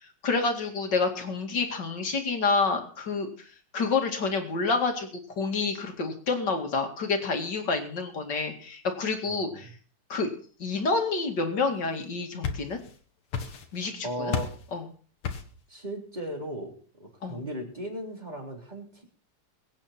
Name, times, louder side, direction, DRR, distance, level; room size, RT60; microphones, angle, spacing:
voice 1, 0.2-3.5 3.7-5.1 5.4-9.7 10.1-10.3 10.6-12.8 13.7-14.3 14.7-14.8 17.2-17.4, left 4 dB, 55° left, 4 dB, 2.8 m, -28 dB
voice 2, 9.3-9.6 14.0-14.5 15.7-19.0, right 1 dB, 20° right, 0 dB, 3.7 m, -37 dB
sound 1, 12.0-13.0 13.3-13.9 14.3-14.7 15.2-15.6, left 6 dB, 85° left, 2.5 m, -33 dB
22.5 x 8.9 x 4.3 m, 0.42 s
omnidirectional pair, 2.4 m